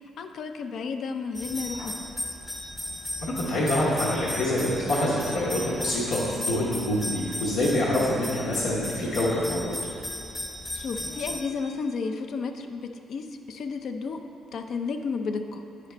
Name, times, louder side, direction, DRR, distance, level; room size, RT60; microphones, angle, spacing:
voice 1, 0.2-2.1 10.7-14.2 14.5-15.6, left 4 dB, 65° left, 6 dB, 0.4 m, -32 dB
sound 1, 1.3-11.4, left 1 dB, 15° left, 1.0 m, -35 dB
voice 2, 3.2-9.7, left 1 dB, 90° left, -7 dB, 1.1 m, -26 dB
9.2 x 4.9 x 3.3 m, 2.6 s
cardioid pair, 90°, 0 cm